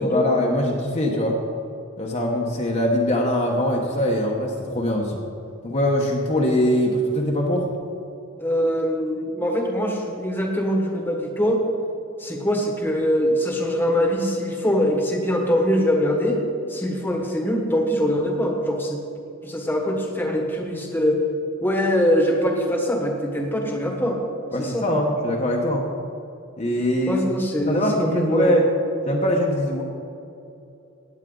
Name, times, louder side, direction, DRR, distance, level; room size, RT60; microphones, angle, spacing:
voice 1, 0.0-1.4 2.0-5.2 5.6-7.7 24.5-25.9 26.6-27.3 27.7-28.7 29.1-29.8, left 1 dB, 30° left, -1 dB, 1.0 m, -22 dB
voice 2, 8.4-11.6 12.2-16.4 16.7-19.0 19.4-21.2 21.6-24.2 24.6-24.9 27.1-28.5, equal, 10° left, 1 dB, 1.3 m, -23 dB
17.0 x 9.0 x 3.9 m, 2.7 s
head